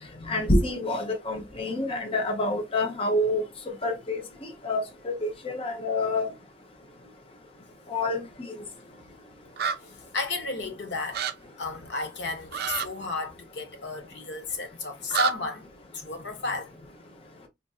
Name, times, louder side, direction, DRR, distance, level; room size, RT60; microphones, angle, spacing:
voice 1, 0.3-6.3 7.9-8.5, left 2 dB, 30° left, 0.7 m, -28 dB
sound 1, 9.6-9.8 11.1-11.3 12.5-12.9 15.1-15.3, right 7 dB, 55° right, 0.4 m, -27 dB
voice 2, 9.8-11.2 11.6-15.7 15.9-16.9, left 3 dB, 70° left, 0.8 m, -33 dB
3.9 x 2.5 x 2.3 m
head